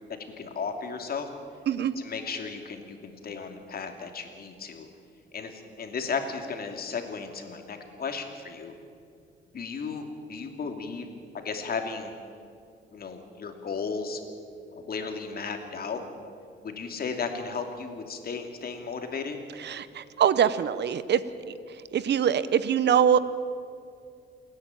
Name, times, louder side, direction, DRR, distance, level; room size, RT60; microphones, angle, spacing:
voice 1, 0.4-1.3 2.0-4.9 5.3-8.7 9.5-11.1 11.3-12.1 12.9-14.2 14.7-16.0 16.6-19.4, left 5 dB, 50° left, 5 dB, 2.8 m, -34 dB
voice 2, 19.6-21.2 21.7-23.2, right 8 dB, 60° right, 15 dB, 1.0 m, -23 dB
28.5 x 10.5 x 9.1 m, 2.3 s
cardioid pair, 90°, 20 cm